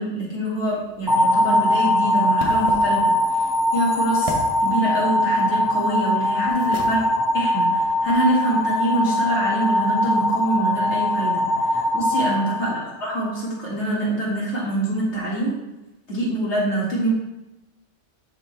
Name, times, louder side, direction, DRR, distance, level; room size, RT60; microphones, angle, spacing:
voice 1, 0.0-3.0 3.3-3.5 3.7-4.3 4.6-7.0 7.3-15.5 16.1-17.1, right 1 dB, 65° left, -6 dB, 2.5 m, -25 dB
sound 1, 0.6-8.3, right 1 dB, 30° right, 1.0 m, -38 dB
sound 2, 1.1-13.2, left 1 dB, 5° right, 0.6 m, -21 dB
10.5 x 4.0 x 3.4 m, 0.98 s
omnidirectional pair, 1.2 m